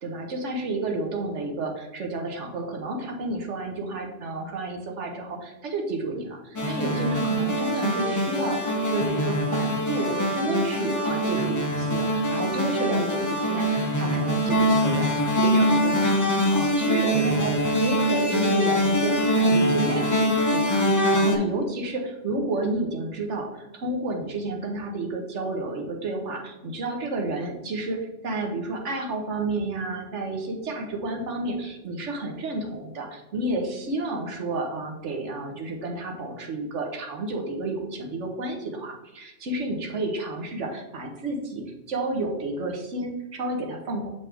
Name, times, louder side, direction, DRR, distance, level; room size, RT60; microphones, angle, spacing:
voice 1, 0.0-44.1, right 2 dB, 90° right, 2 dB, 1.4 m, -31 dB
sound 1, 6.6-21.4, equal, 20° left, 0.6 m, -23 dB
7.3 x 4.0 x 3.4 m, 0.98 s
omnidirectional pair, 1.2 m